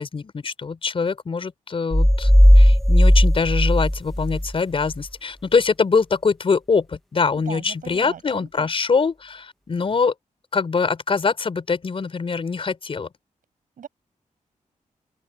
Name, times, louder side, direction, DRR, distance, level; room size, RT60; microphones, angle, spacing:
voice 1, 0.0-2.3 2.6-10.1 10.5-13.1, left 5 dB, 40° left, 5.0 m, -23 dB
sound 1, 1.9-4.5, equal, ahead, 0.3 m, -15 dB
voice 2, 7.3-8.7 13.8-13.9, right 8 dB, 80° right, 7.4 m, -39 dB
wide cardioid pair, 150°, 14 cm